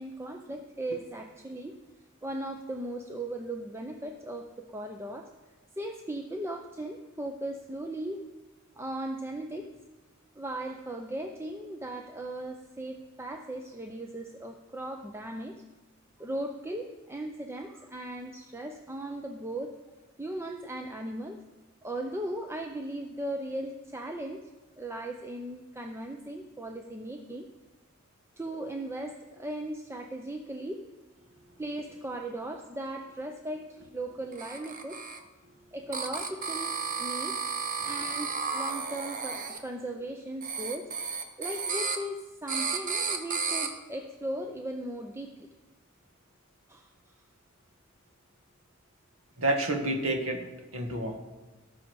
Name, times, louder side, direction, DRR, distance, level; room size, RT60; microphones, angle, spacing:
voice 1, 0.0-1.8 2.2-5.3 5.8-8.2 8.8-9.7 10.4-15.6 16.2-19.7 20.2-21.4 21.8-24.4 24.8-27.5 28.4-30.8 31.6-35.0 35.7-37.3 37.8-40.9 41.4-45.5 46.7-46.9, right 1 dB, 10° right, 3 dB, 0.6 m, -37 dB
sound 1, 34.3-35.2 35.9-39.6 40.4-42.0 42.5-43.7, right 5 dB, 40° right, 1.0 m, -33 dB
voice 2, 49.4-50.5 50.7-51.2, right 1 dB, 80° right, 3 dB, 1.6 m, -29 dB
18.0 x 6.3 x 4.7 m, 1.1 s
head